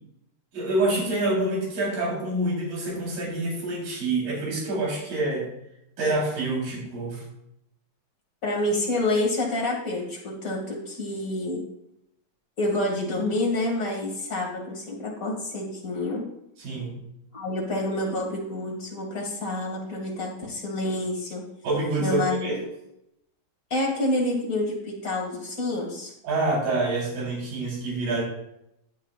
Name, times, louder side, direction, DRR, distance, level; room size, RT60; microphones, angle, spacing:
voice 1, 0.5-5.5 6.0-7.2 16.6-17.0 21.6-22.6 26.2-28.2, right 2 dB, 75° right, -4 dB, 5.5 m, -27 dB
voice 2, 8.4-11.6 12.6-16.2 17.3-21.4 22.0-22.5 23.7-26.1, left 1 dB, 30° left, -2 dB, 2.2 m, -28 dB
16.0 x 9.5 x 2.5 m, 0.81 s
omnidirectional pair, 3.9 m